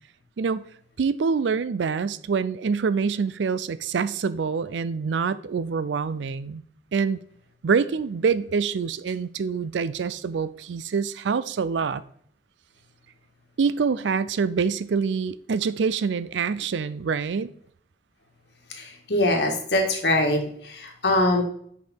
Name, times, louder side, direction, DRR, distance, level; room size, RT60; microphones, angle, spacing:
voice 1, 1.0-6.6 6.9-7.2 7.6-12.0 13.6-17.5, right 5 dB, 90° right, 0.4 m, -25 dB
voice 2, 18.7-21.4, left 1 dB, 70° left, 1.8 m, -23 dB
7.9 x 5.3 x 4.4 m
head